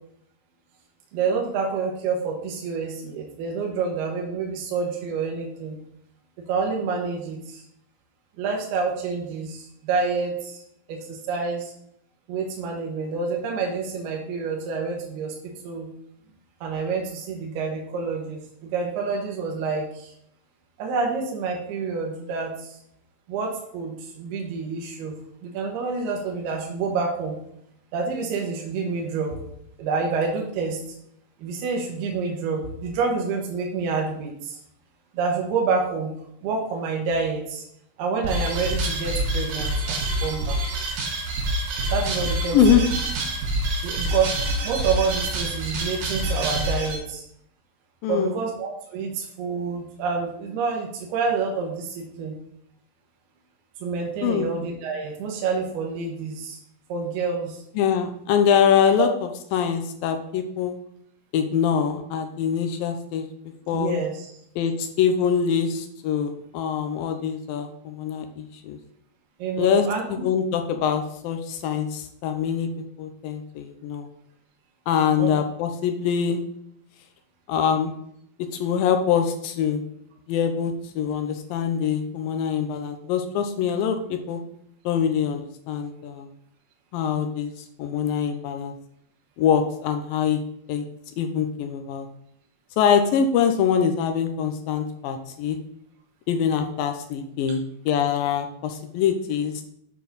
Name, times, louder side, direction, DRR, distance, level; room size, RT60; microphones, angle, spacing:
voice 1, 1.1-5.8 6.5-7.6 8.4-10.6 10.9-11.7 12.3-15.9 16.6-20.1 20.8-22.8 23.3-25.1 25.4-27.4 27.9-29.4 29.8-30.8 31.4-34.6 35.1-36.1 36.4-37.6 38.0-40.6 41.9-42.6 43.8-44.3 44.6-47.2 48.1-52.3 53.8-56.6 56.9-57.6 59.0-59.1 63.7-64.3 69.4-70.1 75.2-75.3, right 4 dB, 75° right, 0 dB, 3.2 m, -28 dB
sound 1, 38.2-47.0, right 1 dB, 55° right, 2.7 m, -26 dB
voice 2, 48.0-48.3 54.2-54.5 57.8-59.1 59.5-60.8 61.3-63.3 63.7-63.9 64.6-68.8 69.6-72.7 73.0-74.1 74.9-76.4 77.5-77.9 78.6-79.8 80.3-84.4 84.9-86.3 86.9-87.5 87.8-88.7 89.4-90.4 90.7-90.9 91.2-92.1 92.8-95.6 96.3-99.6, left 7 dB, 80° left, 6 dB, 2.2 m, -24 dB
8.3 x 6.9 x 4.1 m, 0.72 s
omnidirectional pair, 4.7 m